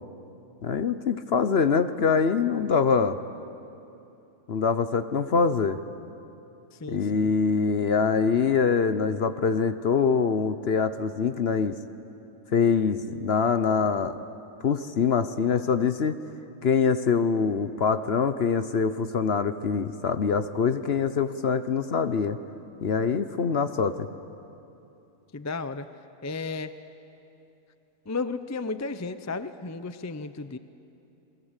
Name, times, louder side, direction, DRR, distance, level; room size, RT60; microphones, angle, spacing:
voice 1, 0.6-3.2 4.5-5.8 6.9-11.7 12.5-14.2 14.6-16.2 16.6-22.4 22.8-24.1, left 5 dB, 50° left, 11 dB, 0.9 m, -24 dB
voice 2, 6.7-7.3 25.3-25.9 26.2-26.7 28.1-30.6, left 3 dB, 25° left, 11 dB, 0.3 m, -33 dB
29.5 x 22.0 x 8.2 m, 2.8 s
omnidirectional pair, 1.6 m